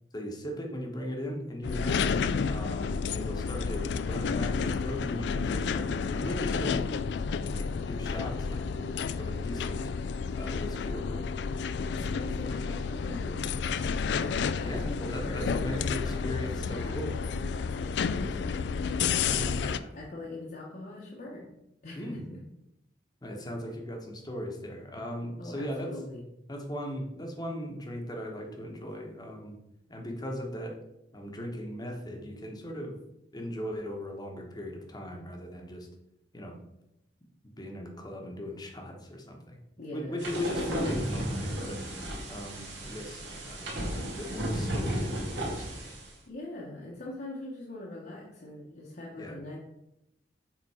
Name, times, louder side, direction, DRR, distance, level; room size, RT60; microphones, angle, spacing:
voice 1, 0.1-2.1 2.5-6.9 7.4-9.8 10.3-11.4 14.6-17.2 19.2-19.9 21.9-22.3 23.2-25.9 26.5-29.6 29.9-30.8 31.1-33.0 33.3-35.9 36.3-36.6 37.6-39.6 39.9-41.8 42.3-45.9 49.2-49.3, equal, 20° left, 2 dB, 1.1 m, -38 dB
sound 1, 1.6-19.8, left 5 dB, 65° left, 0.3 m, -31 dB
voice 2, 11.9-13.7 14.6-18.7 19.9-21.5 21.8-22.4 25.4-26.2 39.8-40.2 46.3-49.6, left 1 dB, 50° left, -5 dB, 1.1 m, -42 dB
sound 2, 40.2-46.1, equal, 85° right, 2.0 m, -34 dB
7.2 x 3.7 x 4.8 m, 0.85 s
head